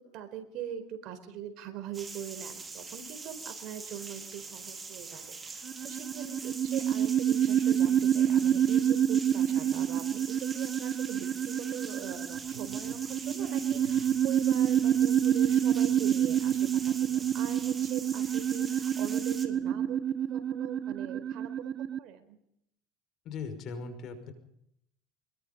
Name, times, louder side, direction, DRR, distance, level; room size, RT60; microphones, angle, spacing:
voice 1, 0.1-21.7 22.0-22.4, right 8 dB, 60° right, 9 dB, 4.5 m, -42 dB
sound 1, 1.9-19.5, right 4 dB, 20° right, 3.8 m, -43 dB
sound 2, 5.7-22.0, right 10 dB, 45° right, 0.7 m, -28 dB
sound 3, 12.0-18.1, right 8 dB, 80° right, 3.8 m, -56 dB
voice 2, 23.2-24.3, left 5 dB, 55° left, 9 dB, 5.6 m, -39 dB
25.5 x 22.0 x 5.4 m, 0.75 s
supercardioid pair, 110°, 0 cm